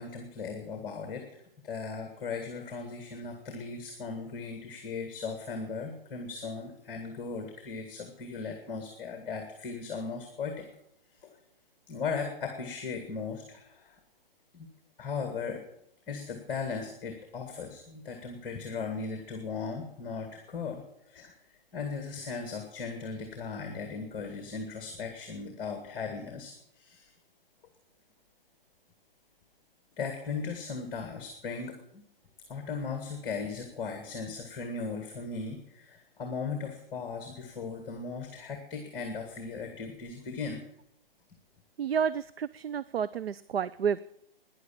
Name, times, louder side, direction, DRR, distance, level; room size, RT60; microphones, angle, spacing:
voice 1, 0.0-10.7 11.1-11.4 11.9-14.0 14.5-14.7 15.0-15.6 16.1-27.1 30.0-32.0 32.5-40.6, left 5 dB, 15° left, 5 dB, 1.8 m, -37 dB
voice 2, 41.8-44.0, right 7 dB, 85° right, 16 dB, 0.6 m, -30 dB
13.0 x 10.5 x 8.7 m, 0.76 s
hypercardioid pair, 155°, 29 cm